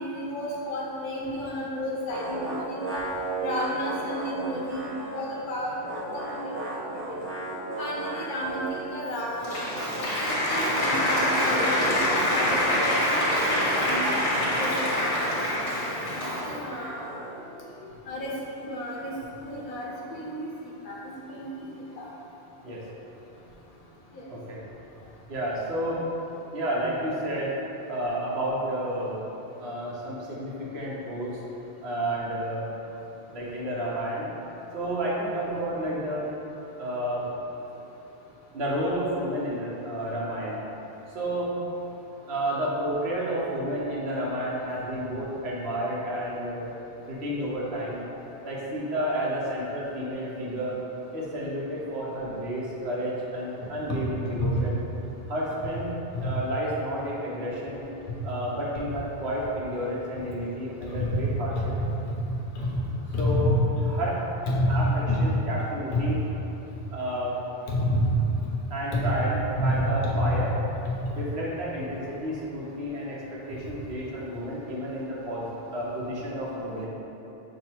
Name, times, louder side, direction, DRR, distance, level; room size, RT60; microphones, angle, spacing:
voice 1, 0.0-3.0 3.4-5.7 6.1-6.5 7.1-7.2 7.8-9.7 10.2-12.0 12.3-14.1 14.6-17.1 18.1-19.1 19.4-20.5 20.8-21.0 21.3-21.5 22.0-22.1 54.4-54.5 56.1-56.3 60.9-61.2 61.5-62.3 62.5-62.7 63.1-63.5 63.8-63.9 64.5-65.3 65.9-66.0 67.7-68.1 68.4-68.6 68.9-69.1 69.6-70.4 70.9-71.0, left 1 dB, 55° left, -4 dB, 0.8 m, -30 dB
sound 1, 2.1-5.4 5.6-8.9 9.4-17.4, right 2 dB, 15° right, 0.5 m, -36 dB
Applause, 9.1-16.7, left 1 dB, 85° left, 1.2 m, -26 dB
voice 2, 24.3-24.6 25.3-26.0 26.5-27.5 27.9-29.2 29.6-31.4 31.8-32.7 33.3-34.3 34.7-36.3 36.8-37.2 38.5-40.6 41.1-41.5 42.3-46.7 47.0-48.0 48.4-50.8 51.1-54.8 55.3-55.9 56.2-57.8 58.2-61.7 63.2-63.5 63.9-64.2 64.7-66.2 66.9-67.3 68.7-70.5 71.1-76.9, right 1 dB, 75° right, -5 dB, 1.1 m, -31 dB
5.1 x 2.0 x 4.3 m, 3.0 s
omnidirectional pair, 1.1 m